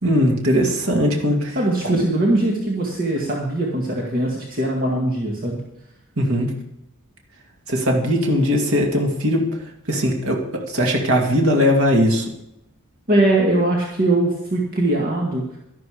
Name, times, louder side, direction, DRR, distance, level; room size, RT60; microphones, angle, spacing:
voice 1, 0.0-1.6 1.8-2.1 6.2-6.5 7.7-9.5 9.9-10.4 10.7-12.2, equal, 65° right, 1 dB, 2.2 m, -19 dB
voice 2, 1.5-5.6 13.1-15.4, right 1 dB, 40° right, -2 dB, 2.0 m, -21 dB
12.0 x 11.5 x 5.0 m, 0.85 s
head